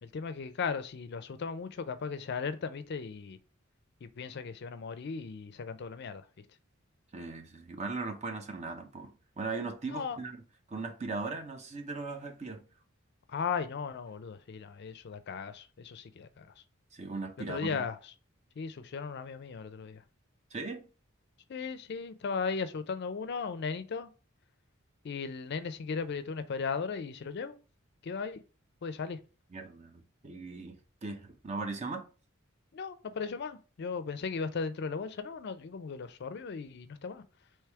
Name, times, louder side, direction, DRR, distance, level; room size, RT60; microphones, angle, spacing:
voice 1, 0.0-3.4 4.0-6.3 9.9-10.2 13.3-16.6 17.5-18.1 18.6-20.0 21.5-24.1 25.0-27.5 28.0-28.4 28.8-29.2 32.7-37.2, left 5 dB, 55° left, 0.4 m, -37 dB
voice 2, 7.1-10.4 10.7-12.6 16.9-17.8 20.5-20.9 29.5-32.1, right 3 dB, 35° right, 0.6 m, -38 dB
3.4 x 3.1 x 4.6 m
head